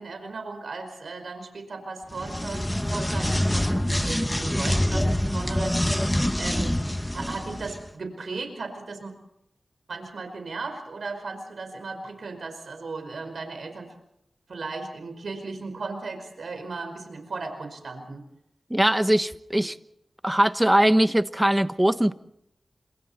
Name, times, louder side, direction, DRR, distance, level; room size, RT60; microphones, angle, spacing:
voice 1, 0.0-6.8 7.1-9.1 9.9-13.9 14.5-18.2, right 3 dB, 80° right, 5.1 m, -36 dB
sound 1, 2.1-7.8, left 1 dB, 10° left, 1.5 m, -25 dB
voice 2, 18.7-19.8 20.2-22.1, right 1 dB, 10° right, 1.2 m, -21 dB
30.0 x 27.0 x 4.4 m
cardioid pair, 45°, 0 cm